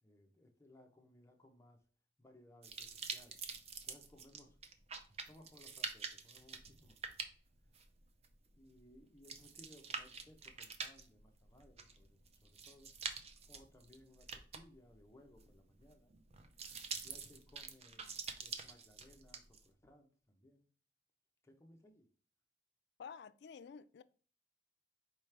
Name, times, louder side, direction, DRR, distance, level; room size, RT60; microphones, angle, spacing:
voice 1, 0.0-1.8 2.2-3.4 3.8-4.6 4.9-7.2 8.5-12.9 13.5-16.1 17.0-20.7 21.4-22.1, left 1 dB, 15° left, 0.7 m, -63 dB
sound 1, 2.6-19.6, right 5 dB, 35° right, 0.5 m, -47 dB
voice 2, 23.0-24.0, left 6 dB, 65° left, 0.3 m, -51 dB
4.7 x 3.0 x 3.3 m
head